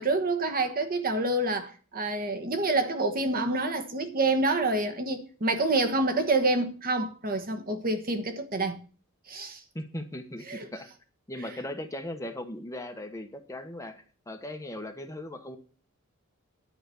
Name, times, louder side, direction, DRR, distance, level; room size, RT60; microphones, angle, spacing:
voice 1, 0.0-8.8 9.3-9.6 10.5-10.7 11.4-11.5, right 2 dB, 45° right, 1.2 m, -27 dB
voice 2, 9.7-10.9 11.3-15.6, left 1 dB, 15° left, 1.1 m, -38 dB
10.5 x 5.0 x 8.3 m
head